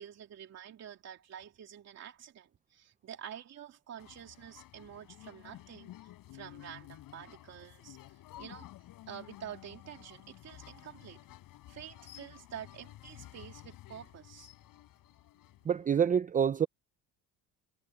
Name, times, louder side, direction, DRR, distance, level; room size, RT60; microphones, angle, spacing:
voice 1, 0.0-8.7 9.1-11.2 11.7-14.5, right 9 dB, 50° right, 3.0 m, -48 dB
sound 1, 4.0-16.1, left 15 dB, 65° left, 7.9 m, -53 dB
voice 2, 15.7-16.7, right 8 dB, 25° right, 0.5 m, -27 dB
cardioid pair, 120°, 35 cm